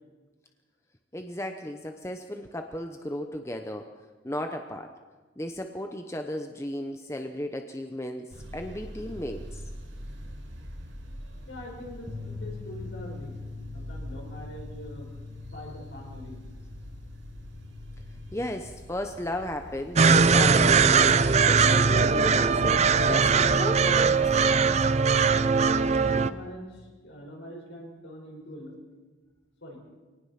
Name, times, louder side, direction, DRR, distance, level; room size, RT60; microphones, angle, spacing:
voice 1, 1.1-3.9 4.2-4.9 5.4-9.6 18.3-24.4, left 1 dB, 15° left, 6 dB, 0.8 m, -35 dB
sound 1, 8.3-25.0, equal, 75° right, 7.0 m, -44 dB
voice 2, 11.5-13.4 13.7-15.1 15.4-16.4 25.7-28.7 29.6-29.8, left 1 dB, 70° left, 0 dB, 5.9 m, -43 dB
sound 2, 12.1-18.3, left 4 dB, 20° right, 1.6 m, -42 dB
sound 3, 20.0-26.3, right 5 dB, 35° right, 0.5 m, -20 dB
23.5 x 18.5 x 5.8 m, 1.3 s
head